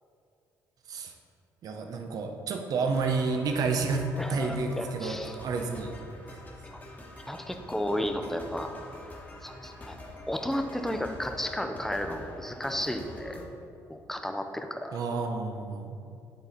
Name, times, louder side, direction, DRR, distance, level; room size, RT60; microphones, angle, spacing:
voice 1, 1.6-4.0 4.3-5.9 14.9-16.0, right 4 dB, 60° right, 4 dB, 0.7 m, -30 dB
sound 1, 2.9-13.5, left 1 dB, 25° left, 1.3 m, -45 dB
voice 2, 4.2-5.4 6.7-6.8 7.3-8.7 9.4-10.0 10.3-13.4 13.9-15.0, left 1 dB, 5° left, 5 dB, 0.6 m, -33 dB
10.0 x 4.1 x 4.0 m, 2.5 s
cardioid pair, 95°, 7 cm